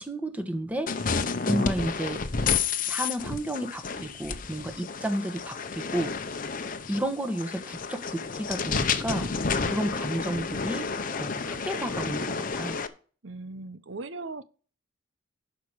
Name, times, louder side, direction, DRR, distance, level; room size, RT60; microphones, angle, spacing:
voice 1, 0.0-2.2 2.9-6.5 6.9-10.9 11.1-12.8, right 1 dB, 10° right, 1.4 m, -32 dB
sound 1, 0.9-12.9, left 5 dB, 45° left, 0.9 m, -30 dB
voice 2, 13.2-14.4, right 3 dB, 70° right, 0.9 m, -38 dB
12.0 x 5.1 x 6.3 m
head